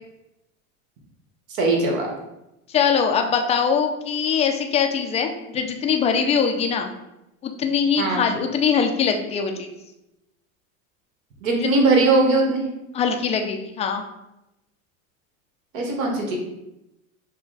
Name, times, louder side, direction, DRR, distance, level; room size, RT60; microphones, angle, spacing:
voice 1, 1.6-2.1 8.0-8.2 11.4-12.6 15.7-16.4, right 3 dB, 70° right, 0 dB, 1.5 m, -19 dB
voice 2, 2.7-6.9 7.4-9.7 11.6-11.7 12.9-14.0, left 6 dB, 15° left, 4 dB, 0.3 m, -22 dB
5.9 x 2.2 x 4.0 m, 0.91 s
supercardioid pair, 110°, 41 cm